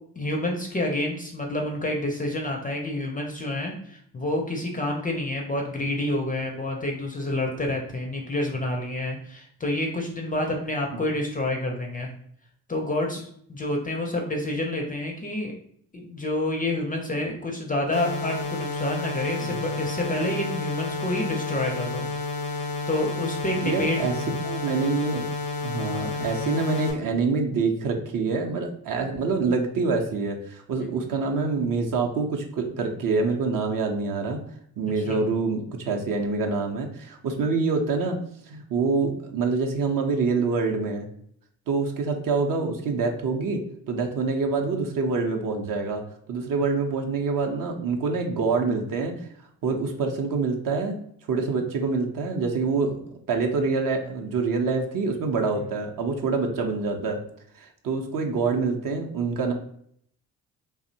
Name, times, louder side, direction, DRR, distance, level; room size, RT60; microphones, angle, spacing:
voice 1, 0.2-12.1 12.7-15.5 15.9-22.1 22.9-24.0 30.8-30.9 35.0-35.2, left 1 dB, 20° left, 1 dB, 0.5 m, -28 dB
sound 1, 17.9-26.9, left 2 dB, 85° left, 0.6 m, -31 dB
voice 2, 23.6-24.1 24.4-25.2 25.6-34.4 34.8-38.2 38.5-41.1 41.7-46.0 46.3-49.2 49.6-51.0 51.3-53.0 53.3-57.2 57.6-59.5, right 4 dB, 50° right, 2 dB, 0.6 m, -26 dB
2.6 x 2.0 x 2.6 m, 0.66 s
hypercardioid pair, 55°, 44 cm